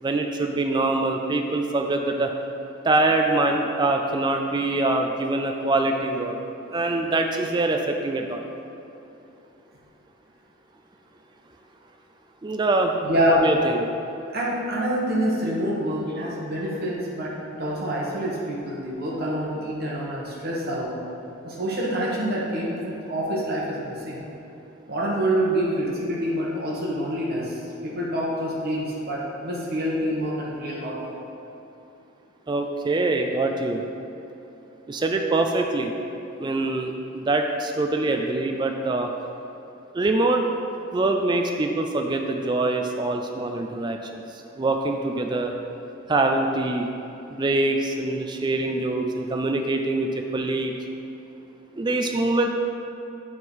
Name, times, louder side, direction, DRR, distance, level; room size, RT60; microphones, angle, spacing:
voice 1, 0.0-2.3 2.8-6.4 6.7-8.4 12.4-13.0 13.3-13.9 32.5-33.8 34.9-35.9 36.4-39.1 39.9-40.5 40.9-45.5 46.1-46.9 47.3-50.7 51.8-52.5, right 2 dB, 20° right, 3 dB, 0.3 m, -24 dB
voice 2, 13.0-13.5 14.3-21.0 21.4-24.2 24.9-31.1, equal, 45° right, -5 dB, 1.2 m, -26 dB
10.5 x 3.7 x 4.6 m, 2.9 s
head